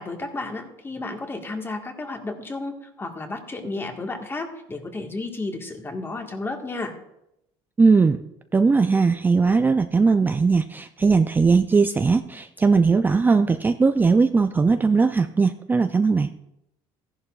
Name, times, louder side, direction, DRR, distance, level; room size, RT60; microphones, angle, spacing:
voice 1, 0.0-6.9, left 2 dB, 20° left, 4 dB, 1.5 m, -32 dB
voice 2, 7.8-8.2 8.5-16.3, right 4 dB, 15° right, 8 dB, 0.4 m, -19 dB
15.0 x 11.0 x 2.4 m, 0.84 s
cardioid pair, 110°, 11 cm